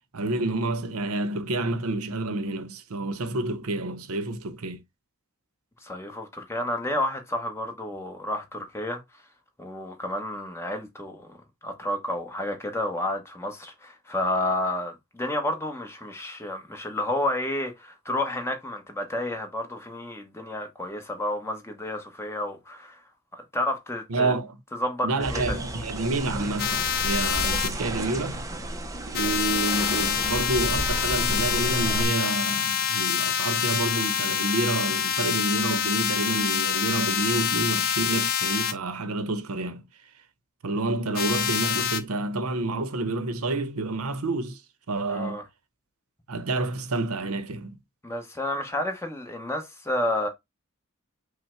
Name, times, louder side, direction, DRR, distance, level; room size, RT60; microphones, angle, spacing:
voice 1, 0.1-4.8 24.1-24.5 25.0-28.4 29.1-39.8 40.6-44.6 44.9-45.4 46.3-47.8, right 2 dB, 85° right, 0.7 m, -29 dB
voice 2, 5.8-9.0 9.6-11.4 11.6-23.0 23.3-24.3 24.7-25.6 45.1-45.4 48.0-50.3, left 1 dB, 10° left, 1.0 m, -30 dB
sound 1, 25.2-32.1, right 1 dB, 15° right, 0.5 m, -32 dB
sound 2, 26.6-27.7 29.1-38.7 41.1-42.0, left 9 dB, 45° left, 0.6 m, -26 dB
5.5 x 2.1 x 4.3 m
head